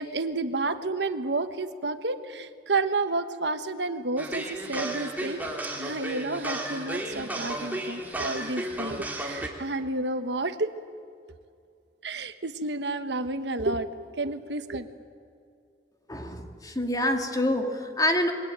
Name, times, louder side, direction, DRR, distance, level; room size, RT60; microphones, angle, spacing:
voice 1, 0.0-5.4 5.8-10.7 12.0-14.9, right 2 dB, 75° right, 9 dB, 1.3 m, -30 dB
sound 1, 4.2-9.5, right 1 dB, 10° right, 3.4 m, -33 dB
voice 2, 16.1-18.3, left 1 dB, 20° left, 4 dB, 2.3 m, -26 dB
28.0 x 22.5 x 8.9 m, 2.4 s
head